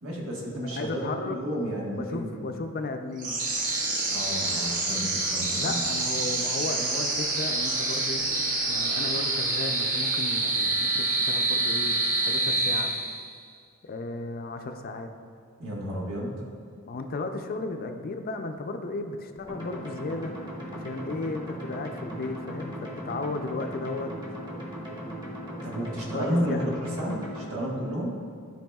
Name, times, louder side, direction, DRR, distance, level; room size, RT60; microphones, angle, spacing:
voice 1, 0.0-2.5 4.1-5.8 15.6-16.4 25.6-28.1, equal, 85° right, -3 dB, 1.4 m, -32 dB
voice 2, 0.6-1.4 2.0-3.4 5.6-8.2 8.7-12.9 13.8-15.1 16.8-20.3 20.7-24.1 26.1-26.7, left 3 dB, 40° left, 6 dB, 0.4 m, -35 dB
sound 1, 3.2-13.4, right 2 dB, 40° right, 0.7 m, -27 dB
sound 2, 19.5-27.5, equal, 20° right, 1.2 m, -38 dB
12.0 x 4.7 x 2.3 m, 2.2 s
head